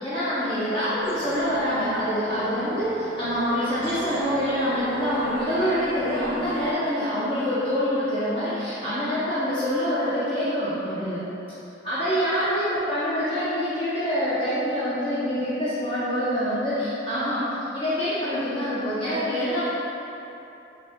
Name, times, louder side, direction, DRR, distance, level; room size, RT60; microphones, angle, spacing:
voice 1, 0.0-11.2 11.8-17.4 17.7-19.6, equal, 30° left, -13 dB, 0.6 m, -25 dB
sound 1, 0.9-6.7, equal, 60° right, 0.4 m, -37 dB
4.0 x 3.3 x 2.2 m, 2.9 s
head